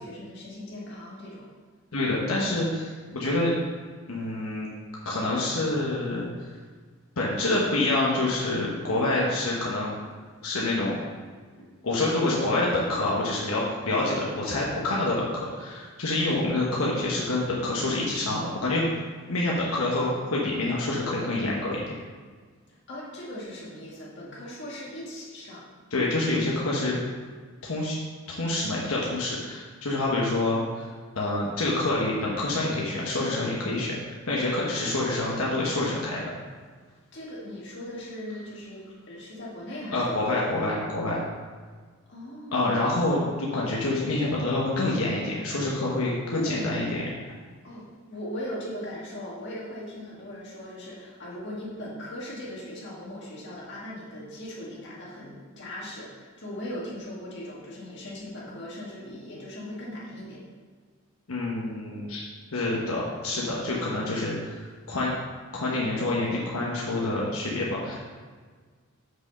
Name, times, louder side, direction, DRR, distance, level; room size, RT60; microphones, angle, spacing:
voice 1, 0.0-1.4 22.9-25.6 37.1-40.3 42.1-42.7 46.3-46.7 47.6-60.4, left 1 dB, 55° left, -6 dB, 2.0 m, -39 dB
voice 2, 1.9-3.5 4.1-4.7 5.0-6.5 7.2-9.9 10.4-11.0 11.8-18.8 19.3-21.8 25.9-27.0 27.7-28.0 28.3-30.9 31.1-33.9 34.3-36.2 39.9-41.2 42.5-47.0 61.3-62.2 62.5-65.1 65.5-67.9, left 2 dB, 85° left, -4 dB, 1.2 m, -27 dB
6.2 x 5.3 x 5.3 m, 1.5 s
head